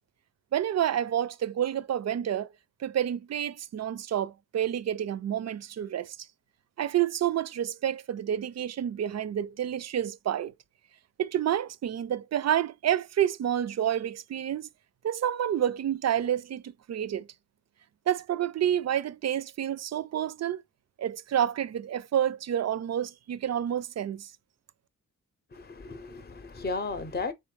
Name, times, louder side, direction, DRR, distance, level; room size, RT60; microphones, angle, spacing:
voice 1, 0.5-2.5 2.8-6.2 6.8-10.5 11.2-14.7 15.0-17.3 18.1-20.6 21.0-24.3, right 10 dB, 50° right, 0.4 m, -29 dB
voice 2, 25.5-27.3, left 3 dB, 30° left, 0.7 m, -34 dB
3.7 x 3.2 x 3.2 m
cardioid pair, 50°, 35 cm